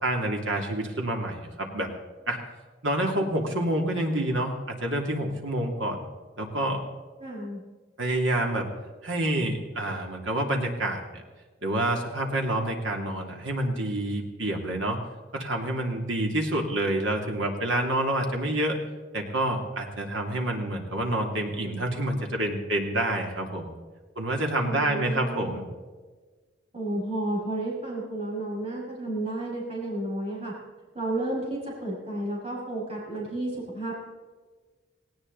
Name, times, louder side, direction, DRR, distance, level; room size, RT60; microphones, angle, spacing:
voice 1, 0.0-1.9 2.3-2.4 2.8-6.0 6.4-6.8 8.0-8.7 9.0-11.2 11.6-15.0 15.3-18.8 19.1-23.7 24.1-25.6, right 1 dB, 80° right, 1 dB, 2.9 m, -28 dB
voice 2, 7.2-7.6 24.5-25.6 26.7-30.5 30.9-34.0, right 1 dB, 30° right, -4 dB, 6.0 m, -32 dB
18.5 x 17.5 x 4.1 m, 1.4 s
head